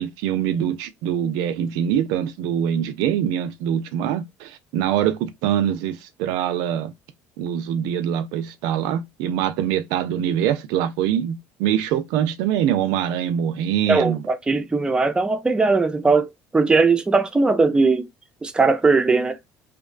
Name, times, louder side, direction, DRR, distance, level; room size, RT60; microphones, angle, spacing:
voice 1, 0.0-6.9 7.4-14.2, right 10 dB, 80° right, 0.4 m, -24 dB
voice 2, 13.9-16.3 16.5-18.1 18.4-19.4, right 3 dB, 15° right, 0.4 m, -19 dB
2.5 x 2.1 x 2.4 m
supercardioid pair, 90°, 7 cm